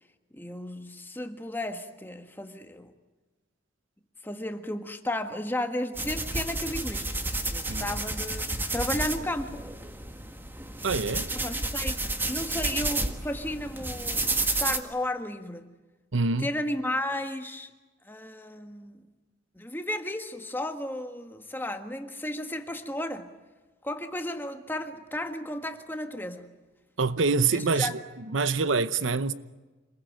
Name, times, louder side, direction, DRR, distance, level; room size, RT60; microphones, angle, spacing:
voice 1, 0.3-2.9 4.2-7.2 7.5-9.6 11.4-12.0 12.3-15.7 16.4-17.7 18.0-19.0 19.5-23.3 23.8-26.5 27.5-27.9, left 1 dB, 10° left, 1.6 m, -34 dB
sound 1, 5.9-14.8, right 2 dB, 10° right, 1.5 m, -31 dB
voice 2, 10.8-11.3 16.1-16.5 27.0-29.3, right 4 dB, 85° right, 0.9 m, -26 dB
27.0 x 21.0 x 9.2 m
head